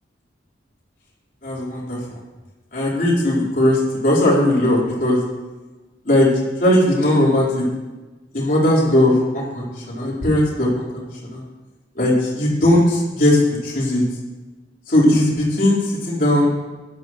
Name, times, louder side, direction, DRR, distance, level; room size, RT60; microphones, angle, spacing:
voice 1, 1.4-2.2 2.7-5.2 6.0-7.6 8.3-11.4 11.9-14.0 14.9-16.6, left 1 dB, 50° left, -5 dB, 4.4 m, -18 dB
18.0 x 12.0 x 3.2 m, 1.2 s
head